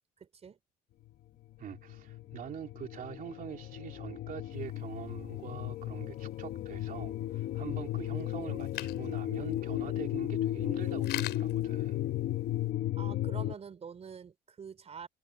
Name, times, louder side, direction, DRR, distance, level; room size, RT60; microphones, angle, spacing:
voice 1, 0.2-0.6 13.0-15.1, right 6 dB, 40° right, 4.5 m, -46 dB
sound 1, 1.6-13.6, left 13 dB, 65° left, 1.1 m, -35 dB
voice 2, 1.6-12.0, right 9 dB, 55° right, 2.9 m, -44 dB
sound 2, 4.5-12.7, left 16 dB, 80° left, 6.0 m, -47 dB
cardioid pair, 110°, 17 cm